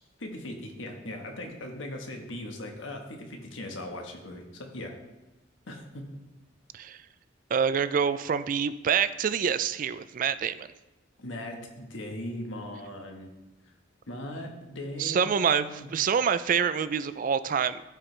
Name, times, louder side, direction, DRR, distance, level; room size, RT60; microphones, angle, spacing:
voice 1, 0.2-4.9 5.7-6.1 11.2-13.3 14.1-15.9, left 1 dB, 75° left, 2 dB, 1.3 m, -39 dB
voice 2, 7.5-10.7 15.0-17.8, right 7 dB, 45° right, 14 dB, 0.3 m, -26 dB
14.0 x 4.7 x 3.3 m, 1.0 s
head